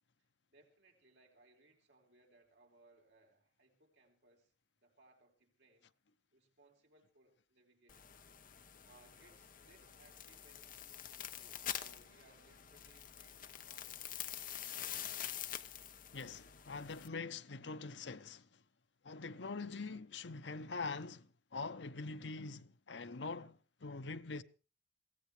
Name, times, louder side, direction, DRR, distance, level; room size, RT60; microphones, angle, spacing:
voice 1, 0.5-5.9 6.3-8.1 8.8-15.3, right 2 dB, 75° right, 4.2 m, -68 dB
sound 1, 7.9-17.1, left 10 dB, 50° left, 1.1 m, -46 dB
voice 2, 16.1-18.5 19.0-24.4, left 4 dB, 85° left, 0.9 m, -44 dB
22.5 x 16.0 x 3.3 m
head